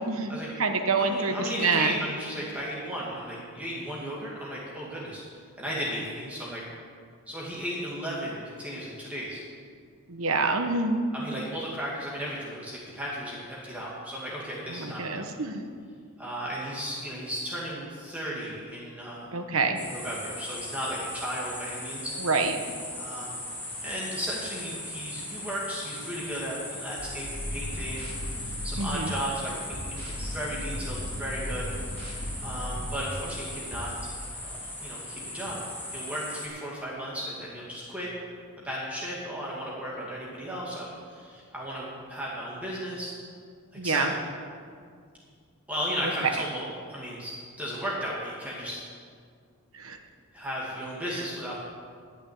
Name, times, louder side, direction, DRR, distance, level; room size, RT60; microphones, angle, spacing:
voice 1, 0.0-1.9 10.1-11.0 14.7-15.6 19.3-19.8 22.2-22.6 28.8-29.1 43.7-44.1 46.2-46.3 49.7-50.0 51.1-51.2, right 4 dB, 70° right, 6 dB, 1.1 m, -27 dB
voice 2, 1.0-5.2 5.6-6.6 7.3-9.4 11.1-15.3 16.2-19.3 19.9-22.2 22.9-23.4 23.8-32.0 32.4-33.9 34.4-35.6 35.9-38.1 38.6-43.2 43.8-44.1 45.7-48.8 50.3-51.6, equal, 5° right, -6 dB, 2.0 m, -35 dB
sound 1, 19.8-36.5, left 1 dB, 10° left, 2.2 m, -39 dB
sound 2, 27.0-29.3 29.7-33.3 33.7-33.9, equal, 40° right, 3.7 m, -36 dB
12.0 x 6.1 x 9.4 m, 2.1 s
head